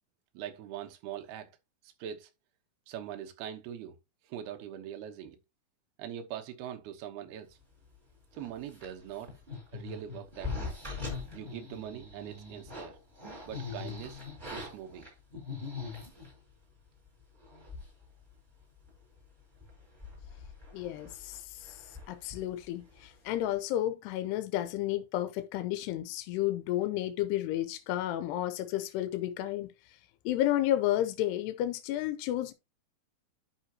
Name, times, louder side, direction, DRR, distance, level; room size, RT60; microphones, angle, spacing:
voice 1, 0.3-1.5 1.8-2.3 2.9-4.0 4.2-5.4 6.0-7.6 8.3-9.3 9.7-10.7 11.3-13.0 13.5-14.2 14.5-15.1, right 10 dB, 75° right, 2.9 m, -42 dB
sound 1, 8.3-16.4 17.1-17.2 17.4-18.0 18.3-18.4 18.8-19.2 19.5-23.1 23.3-23.6, left 4 dB, 10° right, 3.8 m, -42 dB
voice 2, 20.7-21.8 22.1-29.7 30.3-32.5, left 13 dB, 80° left, 2.8 m, -32 dB
11.0 x 5.7 x 2.9 m
omnidirectional pair, 4.9 m